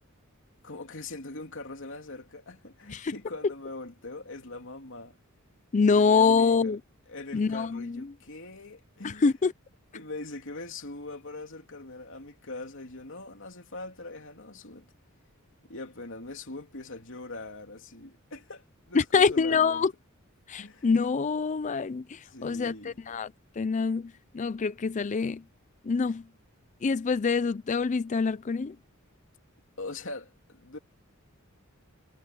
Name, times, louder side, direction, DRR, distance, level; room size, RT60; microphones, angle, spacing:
voice 1, 0.6-5.2 5.9-6.8 7.1-9.3 9.9-14.9 15.6-19.9 20.6-20.9 22.2-23.0 29.8-30.8, left 2 dB, 65° left, 3.2 m, -42 dB
voice 2, 5.7-6.8 7.3-8.0 9.0-9.5 18.9-19.9 20.5-23.3 23.6-24.1 24.3-25.4 25.9-26.2 26.8-28.7, left 5 dB, 35° left, 0.4 m, -25 dB
head